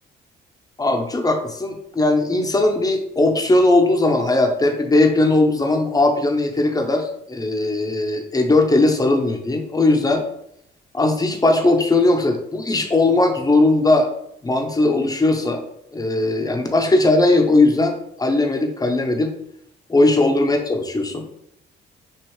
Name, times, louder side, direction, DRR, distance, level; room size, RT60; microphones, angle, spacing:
voice 1, 0.8-10.2 10.9-14.1 14.4-15.6 15.9-19.3 19.9-21.2, left 2 dB, 20° left, 4 dB, 0.8 m, -18 dB
6.1 x 2.7 x 3.2 m, 0.74 s
cardioid pair, 90°, 20 cm